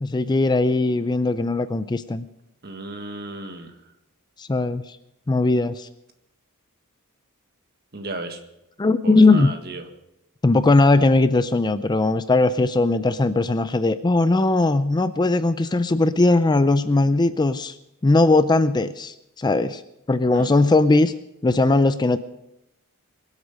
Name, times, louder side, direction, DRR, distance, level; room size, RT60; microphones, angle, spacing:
voice 1, 0.0-2.3 4.4-5.0 5.3-5.9 8.8-9.5 10.4-17.7 18.0-19.8 20.1-21.1 21.4-22.2, left 2 dB, 20° left, 12 dB, 0.4 m, -19 dB
voice 2, 2.6-3.7 7.9-8.4 9.0-9.8 20.3-20.5, right 2 dB, 45° right, 6 dB, 1.7 m, -34 dB
23.5 x 8.2 x 5.3 m, 0.87 s
head